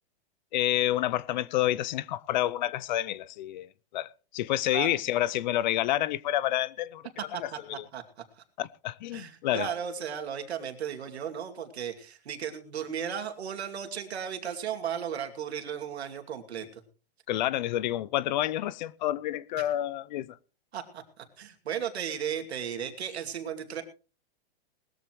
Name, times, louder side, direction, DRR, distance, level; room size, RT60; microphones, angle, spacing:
voice 1, 0.5-7.1 7.4-7.5 7.8-7.9 8.6-9.7 17.3-20.4, left 13 dB, 45° left, 0.6 m, -29 dB
voice 2, 7.3-8.0 9.1-16.7 19.6-19.7 20.7-23.8, right 8 dB, 90° right, 2.6 m, -35 dB
20.0 x 14.0 x 3.1 m
hypercardioid pair, 155°, 31 cm